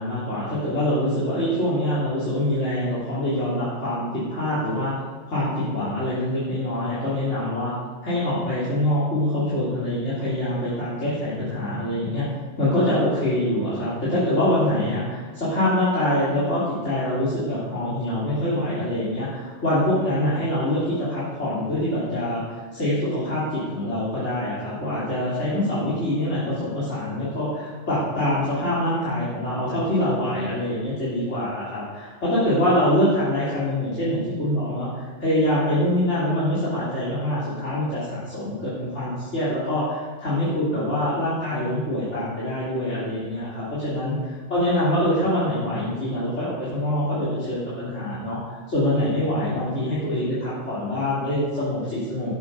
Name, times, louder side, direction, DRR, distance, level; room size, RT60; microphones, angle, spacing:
voice 1, 0.0-4.9 5.3-7.7 8.0-12.3 12.6-15.0 15.4-22.4 22.7-52.4, left 1 dB, 80° left, -11 dB, 3.6 m, -24 dB
12.5 x 8.5 x 5.5 m, 1.5 s
omnidirectional pair, 1.2 m